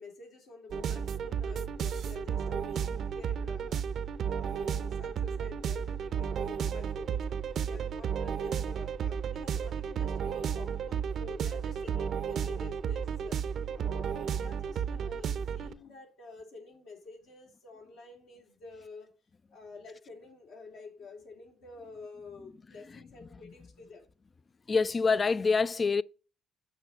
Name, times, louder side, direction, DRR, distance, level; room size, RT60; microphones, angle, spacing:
voice 1, 0.0-3.8 4.3-7.4 7.7-13.4 13.8-19.1 19.5-24.1, left 3 dB, 75° left, 3.0 m, -49 dB
sound 1, 0.7-15.7, right 7 dB, 60° right, 0.6 m, -33 dB
voice 2, 24.7-26.0, left 4 dB, 30° left, 0.3 m, -26 dB
6.9 x 5.7 x 5.0 m
cardioid pair, 100°, 0 cm